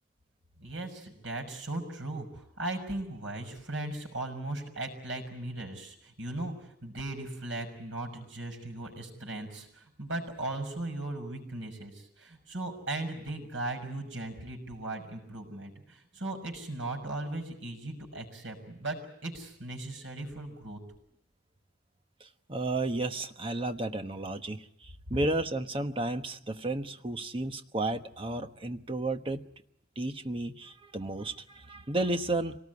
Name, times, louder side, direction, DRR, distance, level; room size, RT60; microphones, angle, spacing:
voice 1, 0.6-20.8, right 2 dB, 85° right, 3 dB, 6.4 m, -38 dB
voice 2, 22.2-29.4 30.0-32.6, right 2 dB, 30° right, 7 dB, 1.2 m, -33 dB
26.5 x 19.0 x 9.7 m, 0.77 s
head